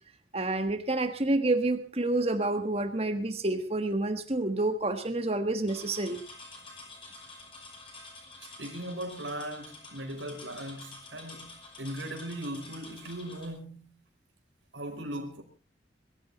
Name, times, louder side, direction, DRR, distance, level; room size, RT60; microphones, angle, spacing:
voice 1, 0.3-6.2, right 2 dB, 30° right, 1.4 m, -28 dB
sound 1, 5.7-13.5, left 3 dB, 30° left, 5.7 m, -48 dB
voice 2, 8.4-14.0 14.7-15.4, right 1 dB, 90° right, 5.3 m, -39 dB
22.5 x 13.5 x 4.1 m
head